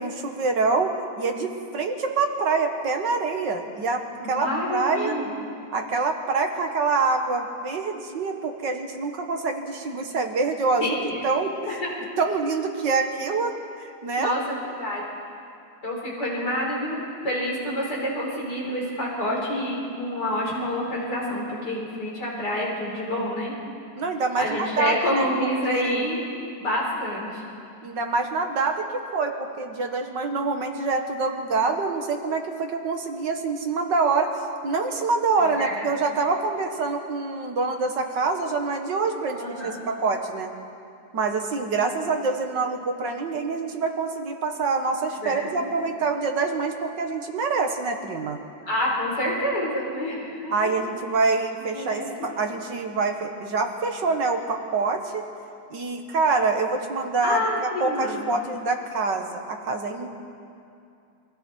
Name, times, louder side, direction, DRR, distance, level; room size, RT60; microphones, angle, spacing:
voice 1, 0.0-5.2 5.7-11.0 11.2-11.8 12.2-13.5 13.8-14.3 24.0-25.2 25.7-26.0 27.8-28.9 29.1-40.5 41.1-48.4 50.5-55.2 55.7-60.1, right 4 dB, 70° right, 4 dB, 2.3 m, -26 dB
voice 2, 4.2-5.4 10.8-11.2 11.6-11.9 14.2-15.0 15.8-23.5 24.4-26.2 26.6-27.4 35.4-35.9 39.3-39.9 45.2-45.7 48.7-50.7 51.7-52.1 57.2-58.3, left 1 dB, 65° left, -4 dB, 5.9 m, -28 dB
28.0 x 23.5 x 4.6 m, 2.5 s
omnidirectional pair, 2.0 m